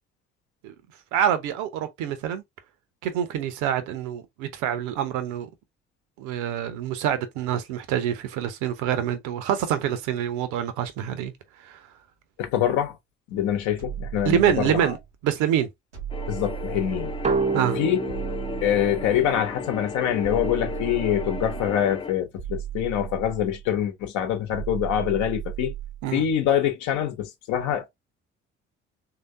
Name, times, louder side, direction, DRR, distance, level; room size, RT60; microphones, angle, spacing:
voice 1, 1.1-2.4 3.0-5.5 6.2-11.3 11.6-11.8 14.2-15.0 15.2-15.7 17.5-17.8 26.0-26.2, right 10 dB, 60° right, 0.8 m, -26 dB
voice 2, 12.4-13.0 13.3-14.9 16.3-17.1 17.8-18.0 18.6-25.7 26.1-27.9, left 10 dB, 55° left, 1.0 m, -25 dB
sound 1, 13.8-15.1 15.9-17.6 18.1-19.5 20.2-21.8 22.4-23.8 24.5-26.1, right 11 dB, 85° right, 1.0 m, -35 dB
sound 2, 16.1-22.1, left 5 dB, 15° left, 0.5 m, -35 dB
sound 3, 17.2-20.7, right 4 dB, 20° right, 0.7 m, -30 dB
3.4 x 2.8 x 2.5 m
figure-of-eight pair, 50°, 34 cm